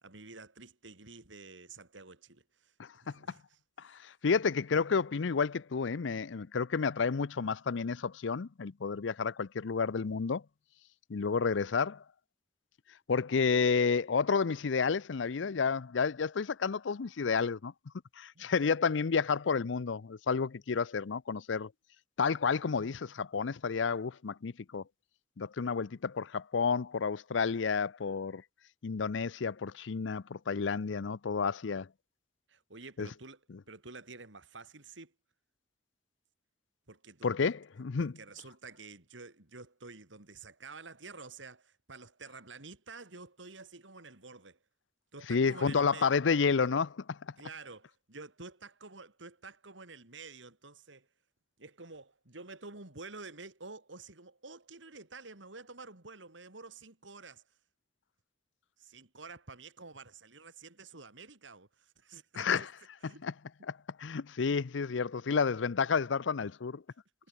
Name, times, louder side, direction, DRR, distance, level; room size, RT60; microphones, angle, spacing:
voice 1, 0.0-2.7 3.0-3.6 18.3-18.5 32.5-33.4 33.7-35.1 36.9-37.5 38.0-44.6 45.1-46.1 47.4-51.1 51.6-57.4 58.8-62.7 63.0-63.2, right 3 dB, 85° right, 3.2 m, -49 dB
voice 2, 2.8-3.2 3.8-10.4 11.1-12.0 13.1-17.7 18.2-21.7 22.2-24.8 25.4-28.4 28.8-31.9 33.0-33.1 37.2-38.1 45.3-47.2 62.3-62.6 63.2-63.3 63.7-66.8, left 5 dB, 85° left, 0.6 m, -30 dB
head